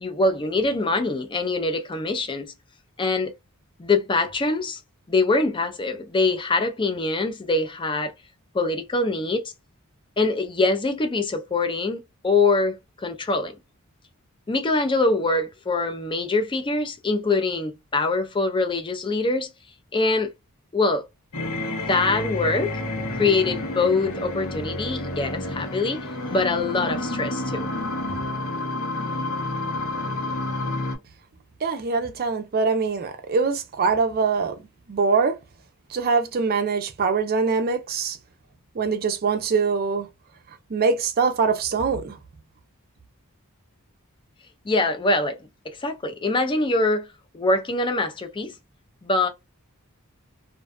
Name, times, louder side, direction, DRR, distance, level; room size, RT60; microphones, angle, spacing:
voice 1, 0.0-2.5 3.0-3.3 3.8-4.8 5.1-8.1 8.5-9.5 10.2-13.5 14.5-19.5 19.9-20.3 20.7-21.0 21.7-22.8 23.2-27.7 44.7-45.4 45.8-47.1 47.3-48.5 49.0-49.3, left 3 dB, 20° left, 0.4 m, -24 dB
sound 1, 21.3-31.0, left 1 dB, 85° left, 1.0 m, -29 dB
voice 2, 31.6-34.5 34.9-35.4 35.9-38.2 38.8-40.1 40.7-42.2, right 5 dB, 45° right, 0.5 m, -23 dB
2.5 x 2.2 x 2.3 m
head